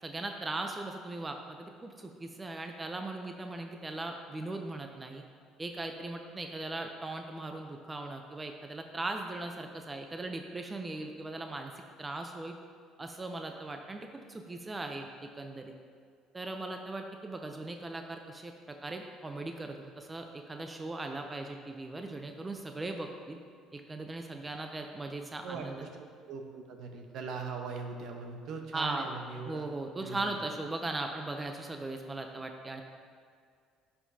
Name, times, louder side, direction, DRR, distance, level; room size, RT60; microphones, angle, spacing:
voice 1, 0.0-5.2 5.6-11.7 12.0-12.5 13.0-15.7 16.3-23.4 23.7-25.8 28.7-29.1 29.5-32.8, right 2 dB, 20° right, 4 dB, 0.6 m, -39 dB
voice 2, 25.4-25.9 26.3-29.7 30.0-30.3, right 4 dB, 65° right, 3 dB, 0.9 m, -40 dB
11.0 x 5.7 x 2.8 m, 2.1 s
supercardioid pair, 85°, 0 cm